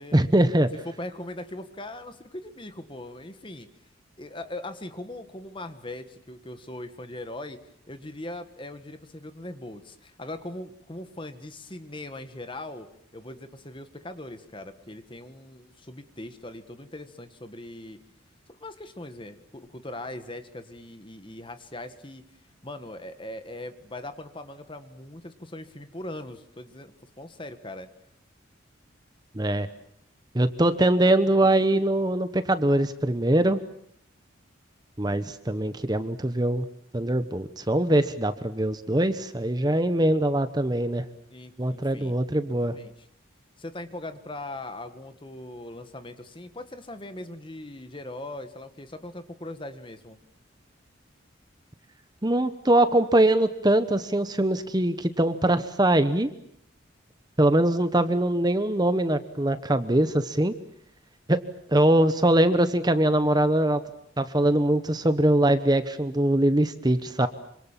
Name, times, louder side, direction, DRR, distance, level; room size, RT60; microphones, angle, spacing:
voice 1, 0.1-0.7 29.3-29.7 30.3-33.6 35.0-36.7 36.9-41.0 41.6-42.7 52.2-56.3 57.4-60.5 61.3-61.4 61.7-63.8 64.2-67.3, right 1 dB, 20° right, 11 dB, 1.0 m, -22 dB
voice 2, 0.8-3.7 4.2-7.6 7.9-18.0 18.5-22.2 22.6-27.9 41.3-42.1 42.4-42.9 43.6-50.2 67.0-67.3, left 1 dB, 25° left, 9 dB, 1.7 m, -40 dB
26.5 x 25.5 x 7.5 m, 0.70 s
head